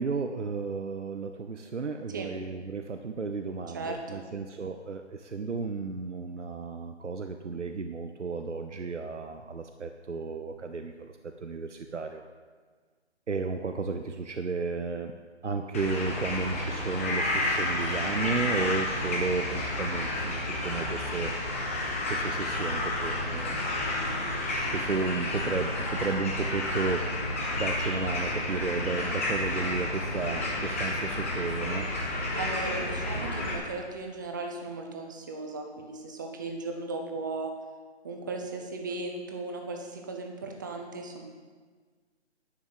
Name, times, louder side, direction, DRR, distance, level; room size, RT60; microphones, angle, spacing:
voice 1, 0.0-12.2 13.3-15.2 15.4-21.3 22.1-23.6 24.7-27.0 27.6-31.9, right 4 dB, 90° right, 6 dB, 0.9 m, -33 dB
voice 2, 3.7-4.2 32.3-37.5 38.0-41.2, right 3 dB, 15° right, 2 dB, 0.9 m, -36 dB
sound 1, 15.7-33.5, left 1 dB, 10° left, 0.8 m, -31 dB
11.5 x 6.2 x 7.6 m, 1.5 s
figure-of-eight pair, 155°, 35 cm